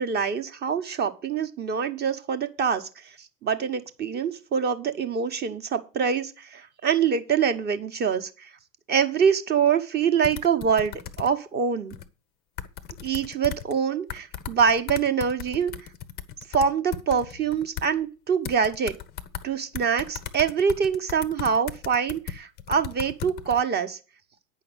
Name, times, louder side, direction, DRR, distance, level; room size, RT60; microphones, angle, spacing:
voice 1, 0.0-8.5 8.9-11.9 13.0-15.9 16.5-19.0 19.4-24.0, right 7 dB, 20° right, 9 dB, 1.0 m, -25 dB
sound 1, 10.2-11.3 11.9-12.1 12.6-13.7 14.1-17.9 18.4-19.4 19.7-23.6, left 10 dB, 20° left, 0.6 m, -36 dB
9.0 x 5.7 x 7.9 m, 0.34 s
figure-of-eight pair, 100°, 48 cm